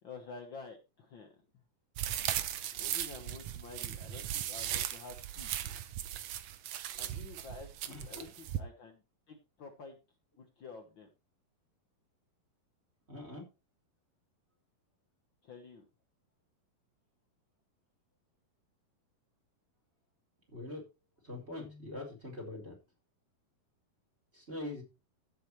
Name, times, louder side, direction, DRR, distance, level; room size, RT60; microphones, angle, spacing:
voice 1, 0.0-1.6 2.8-5.8 7.0-9.0 9.3-10.0 10.4-11.1 15.4-15.9, left 4 dB, 75° left, 4 dB, 1.1 m, -50 dB
sound 1, 2.0-8.6, right 11 dB, 75° right, 1.5 m, -38 dB
voice 2, 7.9-8.3 13.1-13.4 20.5-20.8 21.2-22.7 24.3-24.8, left 2 dB, 15° right, 2 dB, 4.3 m, -43 dB
14.0 x 8.2 x 3.2 m, 0.28 s
omnidirectional pair, 4.2 m